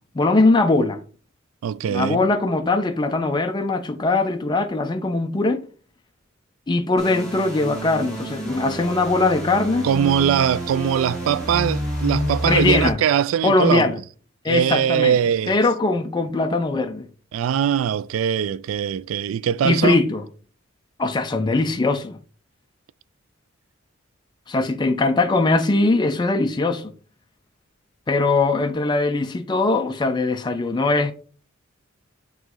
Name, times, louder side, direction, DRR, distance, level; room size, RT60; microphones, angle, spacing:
voice 1, 0.1-1.0 1.9-5.6 6.7-9.9 12.4-13.0 13.4-14.0 14.4-15.2 15.5-17.1 19.6-20.2 21.0-22.2 24.5-26.9 28.1-31.1, left 3 dB, 20° left, 0.4 m, -21 dB
voice 2, 1.6-2.2 9.8-13.9 14.5-15.6 17.3-20.0, right 8 dB, 75° right, 0.3 m, -21 dB
sound 1, 7.0-12.9, equal, 5° left, 2.8 m, -29 dB
9.0 x 3.0 x 3.8 m
head